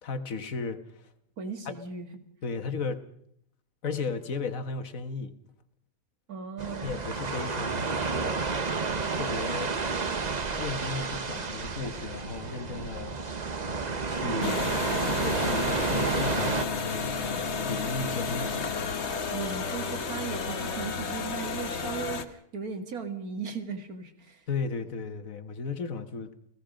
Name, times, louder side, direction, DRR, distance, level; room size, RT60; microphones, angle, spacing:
voice 1, 0.0-1.1 1.6-1.7 2.4-3.0 3.8-5.4 6.8-8.7 9.1-9.7 10.6-13.2 14.0-14.6 15.1-18.7 24.5-26.3, left 4 dB, 65° left, 9 dB, 1.7 m, -35 dB
voice 2, 1.4-2.2 6.3-7.0 14.3-14.7 19.3-24.5, right 5 dB, 80° right, 7 dB, 2.5 m, -37 dB
sound 1, 6.6-16.6, right 4 dB, 30° right, 1.0 m, -31 dB
sound 2, 14.4-22.2, left 5 dB, 50° left, 1.4 m, -32 dB
29.5 x 17.0 x 5.1 m, 0.68 s
omnidirectional pair, 1.5 m